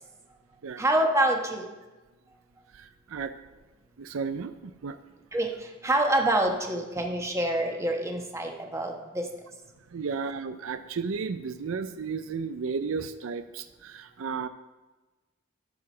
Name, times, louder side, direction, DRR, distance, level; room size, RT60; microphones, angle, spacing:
voice 1, 0.8-1.7 5.3-9.3, right 1 dB, 15° right, 2 dB, 1.2 m, -26 dB
voice 2, 2.7-3.3 4.0-5.0 9.9-14.5, right 5 dB, 80° right, 10 dB, 0.5 m, -33 dB
12.5 x 4.8 x 6.1 m, 1.2 s
head